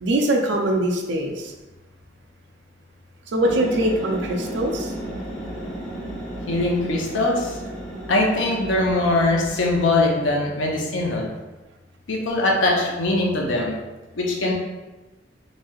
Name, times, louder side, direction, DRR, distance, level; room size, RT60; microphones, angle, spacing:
voice 1, 0.0-1.5 3.3-4.9, right 1 dB, 65° right, 1 dB, 0.4 m, -22 dB
sound 1, 3.4-9.9, right 1 dB, ahead, 0.7 m, -33 dB
voice 2, 6.5-7.6 8.1-11.3 12.1-13.8 14.2-14.5, left 2 dB, 85° left, -1 dB, 0.6 m, -21 dB
3.1 x 2.7 x 2.3 m, 1.1 s
head